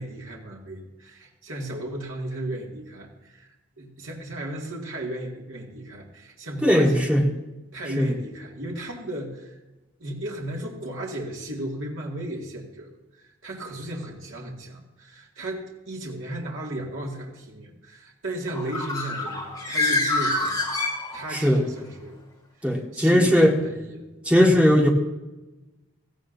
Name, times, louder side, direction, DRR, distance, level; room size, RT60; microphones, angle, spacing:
voice 1, 0.0-3.5 3.8-7.1 7.7-9.5 10.0-12.9 13.2-22.2 22.9-24.0 24.4-24.8, right 1 dB, 70° right, -2 dB, 2.2 m, -35 dB
voice 2, 6.6-7.3 8.0-8.1 21.3-21.6 22.6-23.5 24.2-24.9, equal, 5° right, -1 dB, 1.6 m, -18 dB
Bird, 18.5-21.5, left 2 dB, 15° left, 3.9 m, -26 dB
16.5 x 15.5 x 2.7 m, 1.1 s
head